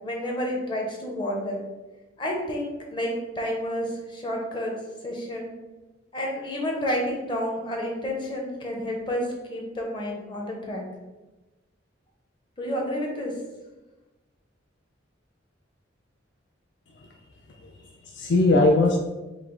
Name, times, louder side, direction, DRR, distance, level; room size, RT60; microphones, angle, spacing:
voice 1, 0.0-1.6 2.2-4.7 5.0-5.5 6.1-10.9 12.6-13.3, equal, 25° left, -1 dB, 0.8 m, -30 dB
voice 2, 17.5-19.0, left 2 dB, 65° left, 1 dB, 0.4 m, -22 dB
4.9 x 2.1 x 3.8 m, 1.1 s
head